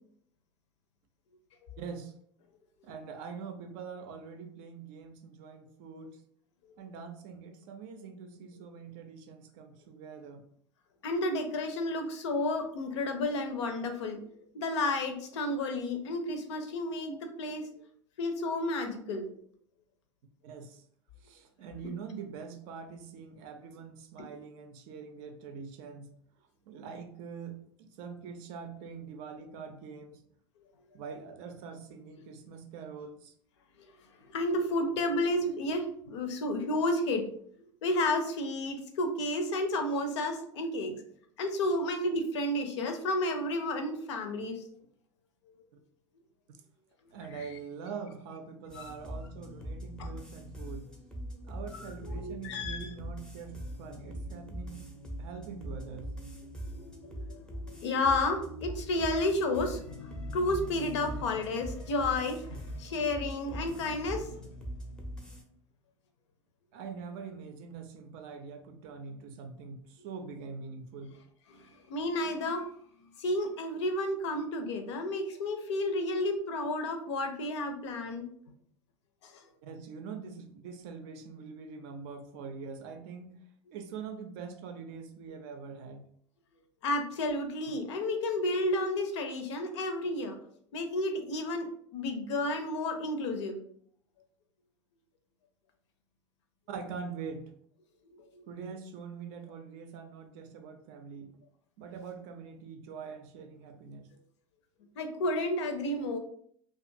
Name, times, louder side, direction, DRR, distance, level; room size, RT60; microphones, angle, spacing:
voice 1, 1.8-2.1 2.8-6.2 6.8-10.5 20.4-20.8 21.2-26.1 26.7-30.2 30.9-33.3 47.1-50.9 51.5-54.9 55.2-56.1 66.7-71.2 79.6-83.4 83.7-86.1 96.7-97.5 98.5-101.4 101.8-104.1, right 5 dB, 55° right, 7 dB, 0.5 m, -44 dB
voice 2, 11.0-17.7 18.2-19.3 34.3-37.3 37.8-40.9 41.4-44.7 45.5-45.6 47.3-47.5 48.7-49.0 50.0-50.1 51.7-52.9 57.1-57.4 57.8-64.5 71.5-72.7 73.2-78.3 79.2-79.4 86.8-90.4 90.7-91.7 91.9-93.6 105.0-106.2, left 1 dB, 65° left, 5 dB, 0.5 m, -31 dB
sound 1, 48.7-65.4, equal, 5° left, 0.5 m, -42 dB
2.5 x 2.3 x 2.6 m, 0.63 s
hypercardioid pair, 85°, 16 cm